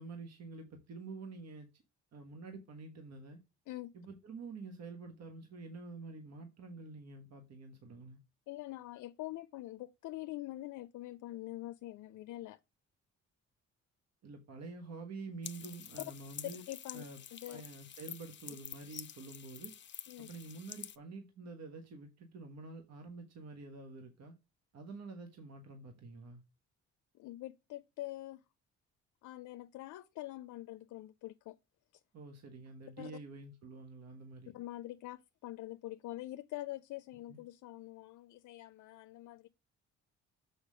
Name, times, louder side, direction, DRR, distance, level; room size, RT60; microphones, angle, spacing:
voice 1, 0.0-1.8 2.1-3.4 3.9-8.2 14.2-16.6 16.9-17.2 17.5-19.7 20.2-24.3 24.7-26.4 32.1-34.5 37.3-37.4, right 3 dB, 60° right, 1.4 m, -48 dB
voice 2, 8.5-12.6 16.0-16.1 16.7-17.0 17.3-17.6 20.1-20.3 27.1-28.4 29.2-31.6 33.0-33.1 34.5-39.5, left 16 dB, 80° left, 0.5 m, -45 dB
sound 1, 15.4-21.0, left 9 dB, 40° left, 0.6 m, -48 dB
6.6 x 5.0 x 5.1 m
cardioid pair, 90°, 30 cm